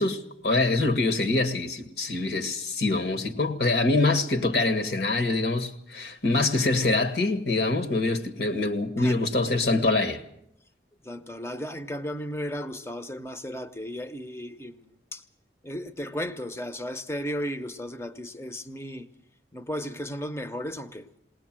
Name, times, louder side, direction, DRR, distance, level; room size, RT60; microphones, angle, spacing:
voice 1, 0.0-10.2, left 2 dB, 60° left, 1.8 m, -25 dB
voice 2, 11.0-15.2 15.6-19.1 19.5-21.2, equal, 15° left, 0.9 m, -35 dB
20.5 x 19.0 x 7.6 m
head